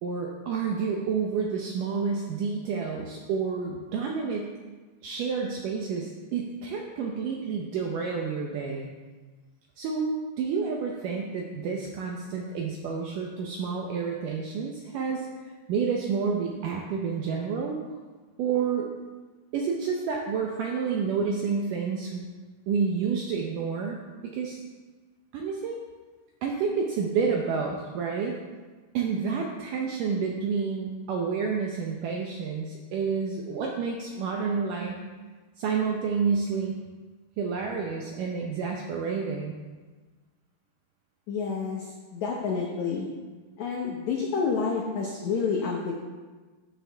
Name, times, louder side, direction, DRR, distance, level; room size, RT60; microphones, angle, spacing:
voice 1, 0.0-4.5 5.0-8.9 9.8-10.1 10.4-15.3 15.7-17.8 18.4-18.9 19.5-22.3 22.7-24.6 25.3-25.8 26.4-28.4 28.9-35.0 35.6-36.8 37.4-39.6, right 5 dB, 80° right, 0 dB, 1.9 m, -29 dB
voice 2, 41.3-43.1 43.6-46.0, left 5 dB, 85° left, -1 dB, 1.6 m, -29 dB
13.0 x 8.0 x 3.4 m, 1.3 s
omnidirectional pair, 4.7 m